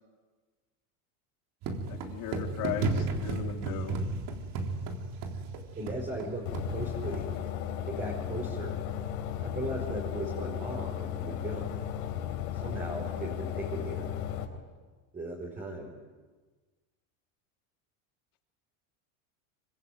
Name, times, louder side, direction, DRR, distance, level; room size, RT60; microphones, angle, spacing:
sound 1, 1.6-7.4, right 3 dB, 50° right, 3.9 m, -34 dB
voice 1, 1.9-4.0, left 12 dB, 50° left, 4 dB, 3.1 m, -37 dB
voice 2, 5.8-6.4 6.7-7.2 7.8-8.8 9.4-11.8 12.5-14.1 15.1-15.9, right 2 dB, 20° right, -1 dB, 4.8 m, -37 dB
sound 2, 6.5-14.5, left 10 dB, 80° left, 4.5 m, -35 dB
26.0 x 24.5 x 9.4 m, 1.3 s
supercardioid pair, 140°, 42 cm